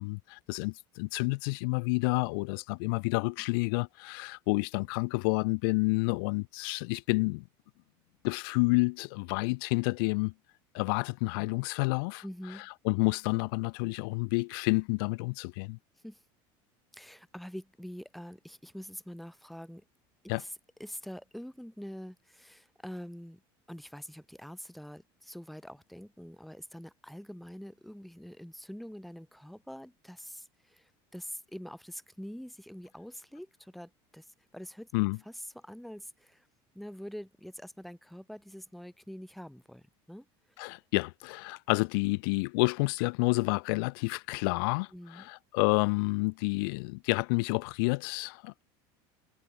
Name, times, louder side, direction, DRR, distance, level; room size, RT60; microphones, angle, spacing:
voice 1, 0.0-7.4 8.2-10.3 10.7-12.2 12.8-15.8 20.3-20.4 34.9-35.2 40.6-48.6, left 29 dB, 75° left, 1.4 m, -29 dB
voice 2, 12.2-12.7 16.0-16.2 16.9-19.8 20.4-20.5 20.8-23.4 23.7-34.3 34.5-36.5 36.7-40.3 44.9-45.3, equal, ahead, 1.9 m, -45 dB
cardioid pair, 165°, 12 cm